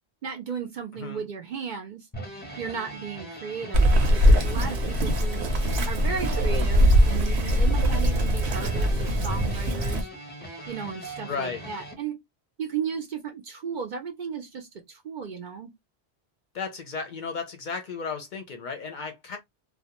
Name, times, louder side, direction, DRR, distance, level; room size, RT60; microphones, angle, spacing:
voice 1, 0.2-2.1 2.6-5.5 5.9-10.1 10.7-12.2 12.6-15.7, right 6 dB, 55° right, 0.6 m, -35 dB
voice 2, 0.9-1.2 11.2-11.6 16.5-19.4, left 5 dB, 55° left, 0.6 m, -34 dB
sound 1, 2.1-11.9, equal, 10° left, 0.6 m, -40 dB
Bird vocalization bird call bird song, 3.7-10.0, equal, 80° right, 0.9 m, -21 dB
2.3 x 2.1 x 2.8 m
omnidirectional pair, 1.1 m